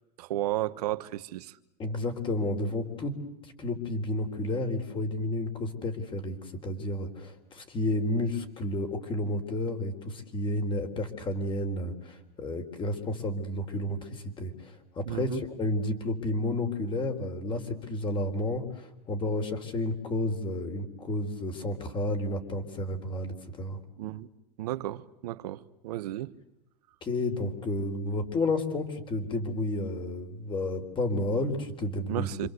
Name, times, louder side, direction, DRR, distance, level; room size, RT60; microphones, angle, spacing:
voice 1, 0.2-1.6 15.0-15.4 24.0-24.3 24.6-26.3 32.1-32.5, right 14 dB, 70° right, 1.4 m, -33 dB
voice 2, 1.8-3.2 3.6-6.4 6.6-23.8 27.0-32.5, left 1 dB, 25° left, 4.1 m, -31 dB
28.0 x 26.0 x 8.1 m
supercardioid pair, 130°, 20 cm